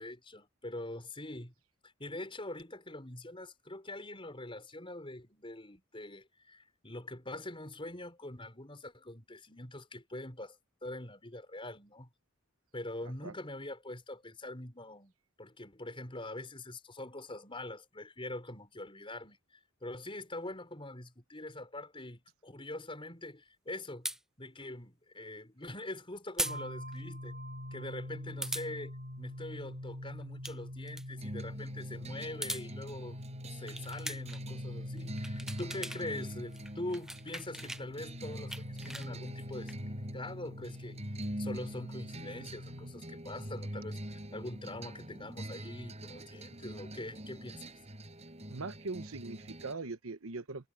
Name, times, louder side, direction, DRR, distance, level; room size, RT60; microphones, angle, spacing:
voice 1, 0.0-1.5 1.8-12.1 12.7-15.1 15.4-19.4 19.8-24.1 24.4-27.4 27.7-33.2 33.5-41.0 41.4-47.7, left 1 dB, 25° left, 5.3 m, -44 dB
sound 1, 24.0-24.2 26.4-26.6 26.9-27.0 28.4-28.7 30.2-30.6 30.9-31.0 32.2-32.7 33.7-34.4 35.0-36.0 36.3-37.8 38.2-39.7, right 1 dB, ahead, 0.6 m, -39 dB
sound 2, 26.4-42.9, left 1 dB, 50° right, 2.2 m, -44 dB
sound 3, 31.2-49.7, right 1 dB, 30° right, 6.1 m, -44 dB
voice 2, 48.5-50.7, right 3 dB, 75° right, 1.1 m, -41 dB
head